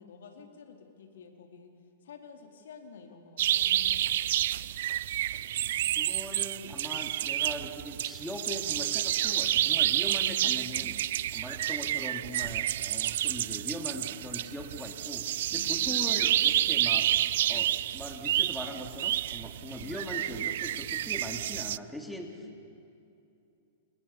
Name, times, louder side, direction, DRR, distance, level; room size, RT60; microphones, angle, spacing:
voice 1, 0.0-1.7 2.0-4.4 10.0-10.8 15.5-16.0 19.6-20.0 22.4-22.6, left 6 dB, 85° left, 3 dB, 4.4 m, -50 dB
sound 1, 3.4-21.8, right 13 dB, 65° right, 0.6 m, -29 dB
voice 2, 5.9-11.0 11.3-17.1 17.4-22.6, equal, ahead, 2 dB, 3.0 m, -40 dB
29.5 x 28.5 x 7.1 m, 2.6 s
hypercardioid pair, 140°, 0 cm